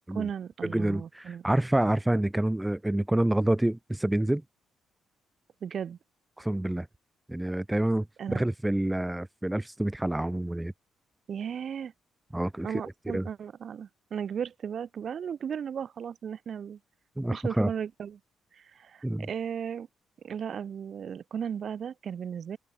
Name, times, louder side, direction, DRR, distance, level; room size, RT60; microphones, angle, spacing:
voice 1, 0.1-1.4 5.6-6.0 8.2-8.4 11.3-11.9 12.6-16.8 17.3-18.2 18.5-19.9 20.2-22.6, right 8 dB, 55° right, 3.5 m, -36 dB
voice 2, 0.6-4.4 6.4-6.9 7.3-8.1 8.3-10.7 12.3-12.8 13.1-13.3 17.2-17.7 19.0-19.3, right 1 dB, 10° right, 0.9 m, -27 dB
open air
cardioid pair, 90°, 0 cm